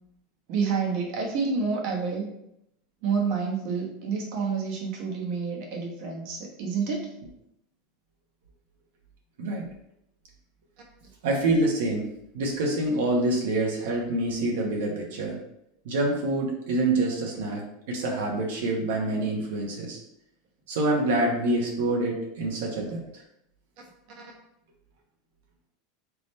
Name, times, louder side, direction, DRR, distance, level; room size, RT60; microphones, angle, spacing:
voice 1, 0.5-2.3 3.0-7.1 24.2-24.3, right 5 dB, 55° right, 0 dB, 1.1 m, -28 dB
voice 2, 11.2-12.1 12.3-15.4 15.8-17.6 17.9-20.0 20.7-23.0, right 2 dB, 80° right, -1 dB, 1.0 m, -26 dB
3.5 x 2.9 x 4.1 m, 0.78 s
supercardioid pair, 135°, 0 cm